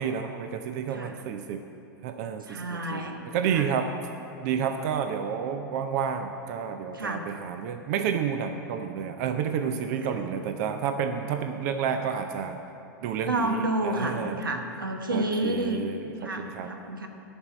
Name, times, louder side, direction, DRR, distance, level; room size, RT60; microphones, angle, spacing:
voice 1, 0.0-1.6 2.0-3.9 4.4-12.6 13.0-14.4 15.1-16.7, right 7 dB, 50° right, 7 dB, 0.6 m, -30 dB
voice 2, 0.9-1.2 2.5-3.7 6.9-7.3 13.2-15.8 16.2-17.1, right 1 dB, 90° right, 5 dB, 1.0 m, -30 dB
11.0 x 5.4 x 8.3 m, 2.7 s
hypercardioid pair, 95°, 11 cm